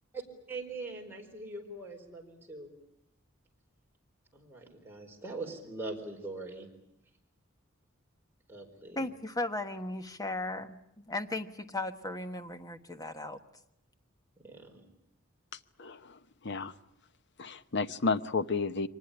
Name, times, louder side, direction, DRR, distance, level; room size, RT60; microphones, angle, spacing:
voice 1, 0.5-2.7 4.3-6.7 8.5-9.1 14.4-14.9, right 2 dB, 10° right, 4.6 m, -42 dB
voice 2, 8.9-10.8 11.1-13.4, left 2 dB, 20° left, 1.3 m, -36 dB
voice 3, 15.8-16.7 17.4-18.9, left 4 dB, 60° left, 1.0 m, -32 dB
24.0 x 19.5 x 10.0 m
head